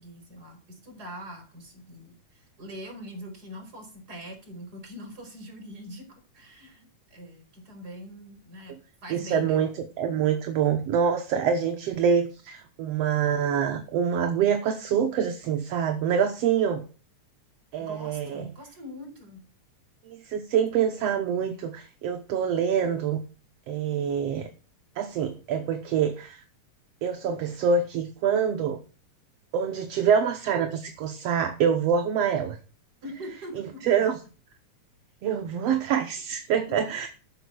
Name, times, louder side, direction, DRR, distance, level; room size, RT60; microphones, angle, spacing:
voice 1, 0.0-9.7 17.8-19.4 33.0-33.8 36.7-36.8, equal, 30° right, 5 dB, 4.3 m, -43 dB
voice 2, 9.1-16.9 17.7-18.5 20.1-23.2 23.7-24.5 25.0-26.4 27.0-28.8 29.5-32.6 33.6-34.2 35.2-37.1, right 7 dB, 65° right, 6 dB, 2.0 m, -26 dB
12.5 x 7.0 x 6.3 m, 0.37 s
omnidirectional pair, 3.3 m